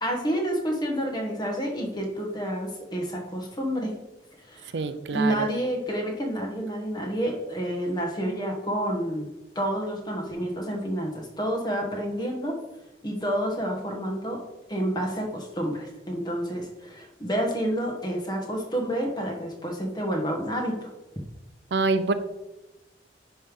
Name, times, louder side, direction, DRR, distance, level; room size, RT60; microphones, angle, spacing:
voice 1, 0.0-3.9 4.5-4.8 5.1-9.3 9.5-12.6 13.0-14.4 14.7-20.9, equal, 25° left, 1 dB, 1.5 m, -29 dB
voice 2, 4.7-5.5 21.7-22.1, right 3 dB, 70° right, 11 dB, 0.5 m, -25 dB
9.9 x 3.3 x 5.3 m, 0.99 s
head